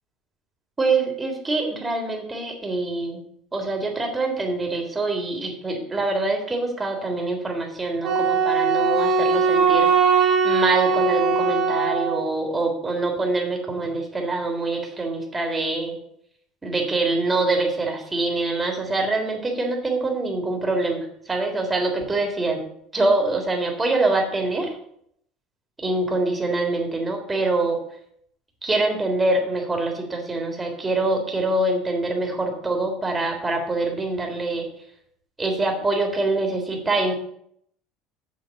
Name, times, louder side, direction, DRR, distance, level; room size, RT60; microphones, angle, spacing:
voice 1, 0.8-3.2 3.5-16.0 16.6-22.6 22.9-24.8 25.8-27.8 28.6-34.7 35.4-37.1, right 2 dB, 20° right, 2 dB, 3.3 m, -25 dB
Wind instrument woodwind instrument, 8.0-12.3, right 5 dB, 50° right, 3.8 m, -20 dB
7.6 x 7.1 x 7.1 m, 0.70 s
supercardioid pair, 90°, 0 cm